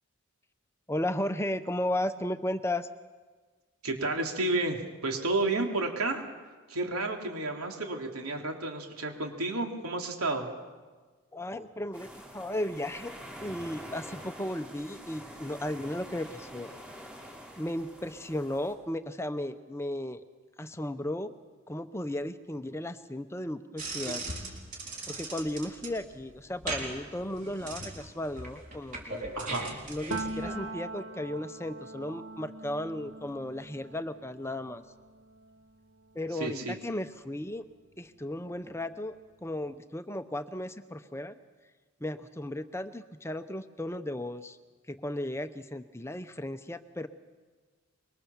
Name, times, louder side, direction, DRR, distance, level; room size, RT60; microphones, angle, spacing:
voice 1, 0.9-2.9 11.3-13.2 13.4-16.7 17.6-20.2 20.6-21.3 21.7-24.2 25.1-29.3 29.9-34.8 36.1-37.6 38.0-39.1 39.4-41.4 42.0-44.6 44.9-47.1, left 1 dB, 10° left, 10 dB, 0.7 m, -35 dB
voice 2, 3.8-6.2 6.7-10.5 29.3-29.8 36.4-36.8, right 2 dB, 90° right, 2 dB, 3.4 m, -31 dB
sound 1, 11.9-18.7, equal, 5° right, 4.8 m, -46 dB
sound 2, 23.8-30.6, right 2 dB, 35° right, 4.3 m, -39 dB
Piano, 30.1-37.7 38.1-39.6, right 2 dB, 65° right, 1.1 m, -43 dB
25.0 x 23.0 x 7.2 m, 1.4 s
head